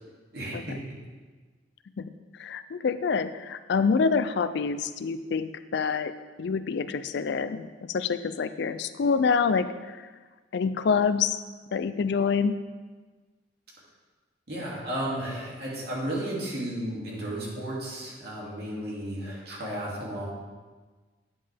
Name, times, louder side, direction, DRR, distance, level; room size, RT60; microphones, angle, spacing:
voice 1, 0.3-0.8 14.5-20.3, right 1 dB, 60° right, -5 dB, 2.5 m, -33 dB
voice 2, 2.4-6.1 6.4-10.0 10.5-11.4 11.7-12.6, left 5 dB, 60° left, 12 dB, 0.4 m, -26 dB
9.8 x 7.5 x 3.4 m, 1.4 s
head